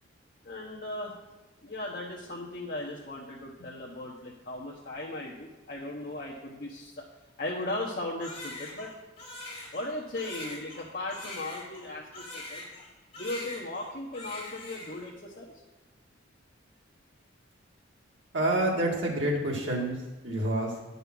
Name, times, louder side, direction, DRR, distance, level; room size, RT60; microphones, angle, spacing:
voice 1, 0.4-1.2 1.6-7.0 7.4-8.9 9.7-12.6 13.2-15.5, left 2 dB, 45° left, -3 dB, 1.1 m, -37 dB
Crying sobbing, 8.2-12.9 13.1-13.9 14.1-15.1, left 1 dB, 30° left, 2.8 m, -42 dB
voice 2, 18.3-20.0 20.2-20.7, right 1 dB, 70° right, -1 dB, 2.1 m, -27 dB
10.5 x 5.5 x 6.1 m, 1.2 s
head